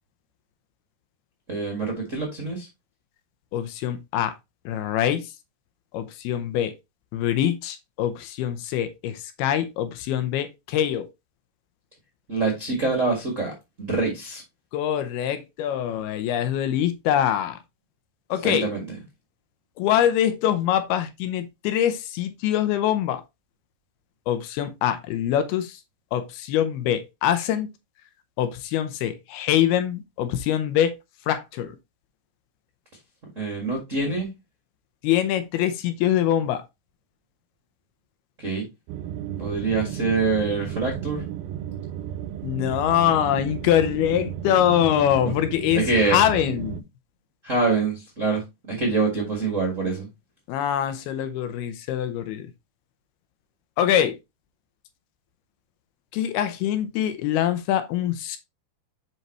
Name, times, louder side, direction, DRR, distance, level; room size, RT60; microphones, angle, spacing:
voice 1, 1.5-2.7 12.3-13.5 13.8-14.4 18.4-18.9 33.3-34.3 38.4-38.7 39.4-41.2 45.7-46.2 47.4-50.1, right 3 dB, 40° right, 1.1 m, -25 dB
voice 2, 3.5-4.3 4.7-5.3 5.9-6.7 7.1-11.1 14.7-17.6 18.3-18.7 19.8-23.2 24.3-25.8 26.1-27.7 28.4-31.0 31.3-31.8 35.0-36.6 42.4-46.8 50.5-52.5 53.8-54.2 56.1-58.4, left 11 dB, 80° left, 2.7 m, -24 dB
sound 1, 38.9-46.8, right 10 dB, 80° right, 2.2 m, -33 dB
7.3 x 5.5 x 3.0 m
omnidirectional pair, 4.6 m